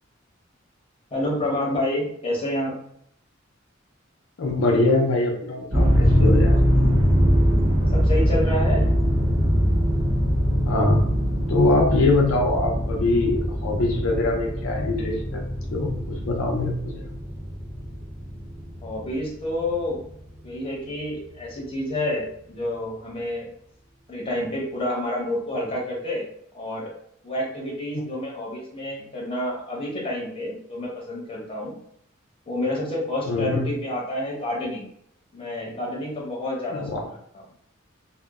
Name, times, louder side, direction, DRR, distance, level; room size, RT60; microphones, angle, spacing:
voice 1, 1.1-2.8 7.9-8.9 18.8-20.0 20.4-23.5 24.1-26.3 26.5-26.9 27.2-31.8 32.5-34.9 35.3-37.2, left 1 dB, 25° left, -3 dB, 0.8 m, -29 dB
voice 2, 4.4-6.6 10.6-11.1 11.5-15.4 15.7-17.1 28.0-28.1 33.3-33.6 36.7-37.0, left 2 dB, 75° left, 0 dB, 0.5 m, -23 dB
sound 1, 5.7-19.0, equal, 35° right, 0.7 m, -22 dB
2.1 x 2.0 x 3.5 m, 0.69 s
head